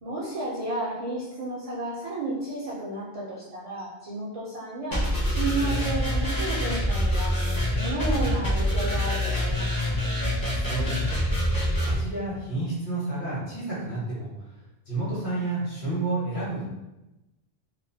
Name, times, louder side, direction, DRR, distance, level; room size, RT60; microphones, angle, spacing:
voice 1, 0.0-10.0, right 2 dB, 45° right, -8 dB, 0.5 m, -32 dB
sound 1, 4.9-12.0, equal, 25° left, 0.6 m, -25 dB
voice 2, 10.6-11.3 11.8-14.3 14.9-16.7, right 2 dB, 55° left, -8 dB, 1.3 m, -30 dB
2.6 x 2.1 x 2.6 m, 0.99 s
omnidirectional pair, 1.1 m